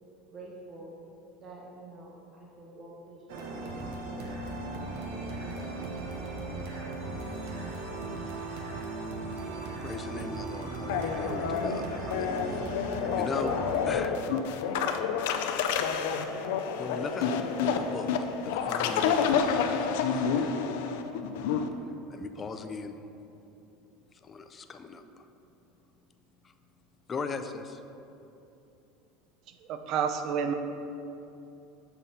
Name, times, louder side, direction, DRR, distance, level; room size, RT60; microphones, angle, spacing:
voice 1, 0.3-1.0 1.4-3.8 4.1-4.3 4.6-5.3, right 2 dB, 30° right, -3 dB, 1.1 m, -48 dB
sound 1, 3.3-13.9, right 2 dB, 80° right, 1.1 m, -37 dB
voice 2, 9.8-13.5 13.8-14.2 16.8-20.7 22.1-23.0 24.1-25.3 26.4-26.5 27.1-27.8, left 4 dB, 25° left, 8 dB, 0.4 m, -39 dB
sound 2, 10.9-21.7, left 6 dB, 80° left, 0.5 m, -29 dB
voice 3, 29.7-30.5, right 7 dB, 50° right, 7 dB, 0.6 m, -29 dB
6.8 x 5.7 x 4.1 m, 2.8 s
supercardioid pair, 135°, 0 cm